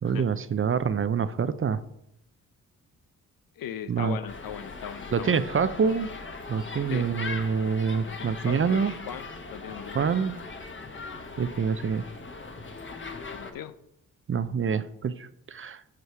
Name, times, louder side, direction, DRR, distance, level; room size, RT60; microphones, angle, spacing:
voice 1, 0.0-1.8 3.9-4.2 5.1-6.1 6.5-8.9 9.9-10.4 11.4-12.1 14.3-15.8, right 6 dB, 35° right, 14 dB, 0.6 m, -26 dB
voice 2, 3.6-6.0 6.9-7.3 8.0-10.2 13.3-13.8, left 9 dB, 70° left, 13 dB, 0.7 m, -39 dB
sound 1, 4.3-13.5, left 3 dB, 35° left, 1.3 m, -40 dB
8.3 x 6.3 x 4.7 m, 0.81 s
cardioid pair, 60°, 35 cm